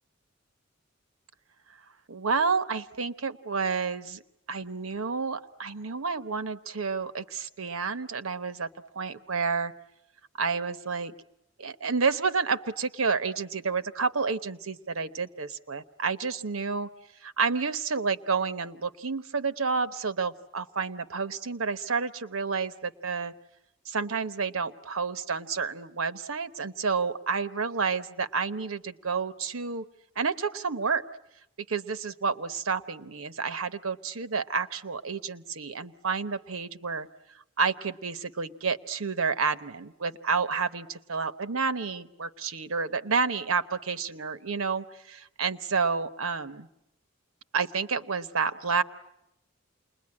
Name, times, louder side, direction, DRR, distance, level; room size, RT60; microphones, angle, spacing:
voice 1, 2.1-4.2 4.5-8.7 8.9-9.7 10.4-11.1 11.6-16.9 17.2-23.3 23.9-29.9 30.2-31.0 31.7-37.1 37.6-46.7 47.5-48.8, right 5 dB, 85° right, 12 dB, 1.0 m, -30 dB
28.5 x 21.0 x 9.8 m, 0.86 s
head